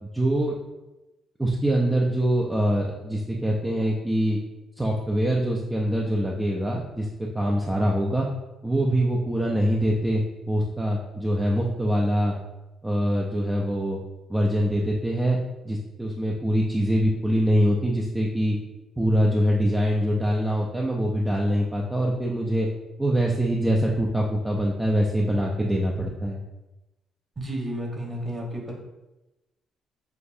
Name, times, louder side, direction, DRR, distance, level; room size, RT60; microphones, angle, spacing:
voice 1, 0.0-0.6 1.4-4.4 4.8-8.3 8.6-12.4 12.8-14.0 14.3-15.4 15.6-18.6 19.0-22.7 23.0-26.4, equal, 10° right, -2 dB, 0.6 m, -24 dB
voice 2, 27.4-28.7, right 1 dB, 30° right, 0 dB, 1.2 m, -32 dB
6.6 x 2.5 x 2.7 m, 1.0 s
cardioid pair, 90°, 0 cm